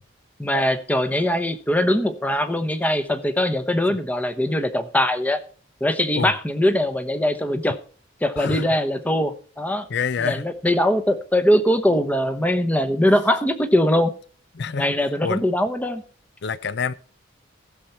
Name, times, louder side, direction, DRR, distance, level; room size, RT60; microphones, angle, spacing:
voice 1, 0.4-5.4 5.8-7.8 8.2-9.9 10.2-14.1 14.7-16.0, left 1 dB, 10° left, 0.9 m, -21 dB
voice 2, 8.4-8.8 9.9-10.4 14.5-15.0 15.2-15.4 16.4-16.9, left 6 dB, 60° left, 0.5 m, -27 dB
15.0 x 7.0 x 4.3 m
head